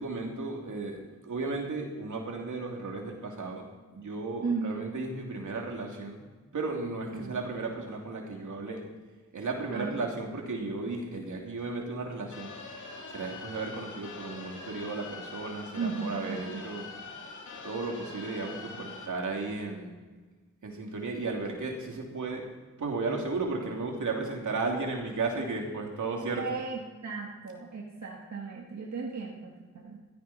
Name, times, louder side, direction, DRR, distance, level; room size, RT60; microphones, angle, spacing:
voice 1, 0.0-3.7 3.9-6.2 6.5-8.8 9.3-12.5 13.1-16.8 17.6-19.9 20.6-22.5 22.8-26.4, right 3 dB, 85° right, 0 dB, 2.9 m, -34 dB
voice 2, 4.4-4.9 7.1-7.4 9.7-10.1 15.7-16.8 26.3-30.0, right 4 dB, 65° right, -2 dB, 1.9 m, -36 dB
sound 1, 12.3-19.1, left 4 dB, 85° left, 2.2 m, -44 dB
16.0 x 14.0 x 4.3 m, 1.3 s
cardioid pair, 60°, 30 cm